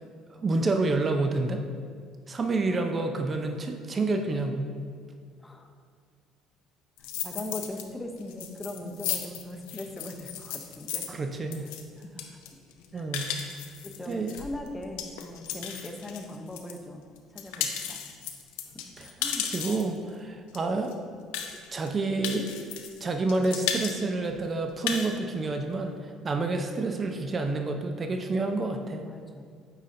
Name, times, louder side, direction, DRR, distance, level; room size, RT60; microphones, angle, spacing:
voice 1, 0.3-1.6 2.3-4.6 11.1-11.7 12.9-13.3 14.1-14.3 19.0-19.1 19.5-21.0 21.7-22.5 23.0-29.0, right 3 dB, 35° right, 5 dB, 0.5 m, -28 dB
sound 1, 7.0-7.8 8.2-16.8 17.2-20.0 20.5-20.6 20.8-20.9 21.3-21.9 22.2-23.0 23.3-24.0 24.3-24.4 24.7-25.1, left 8 dB, 85° left, 0.5 m, -34 dB
voice 2, 7.0-11.1 12.0-12.1 12.5-12.6 12.9-18.1 18.6-18.7 19.2-19.5 29.0-29.4, left 1 dB, 10° left, 3 dB, 0.7 m, -40 dB
8.7 x 4.2 x 2.6 m, 2.1 s
supercardioid pair, 85°, 0 cm